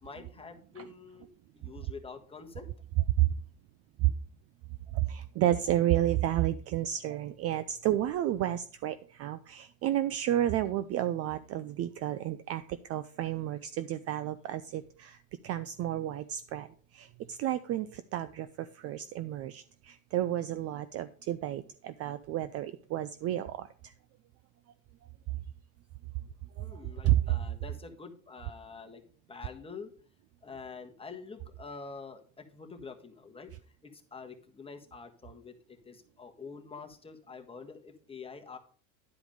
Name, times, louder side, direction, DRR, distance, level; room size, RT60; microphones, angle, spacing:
voice 1, 0.0-2.7 26.6-29.0 29.3-29.9 30.4-33.5 33.8-38.6, left 4 dB, 15° left, 4 dB, 1.3 m, -46 dB
voice 2, 4.9-23.9 26.6-26.8 27.0-27.2, right 13 dB, 35° right, 13 dB, 0.4 m, -31 dB
10.5 x 4.9 x 5.0 m, 0.43 s
supercardioid pair, 110°, 43 cm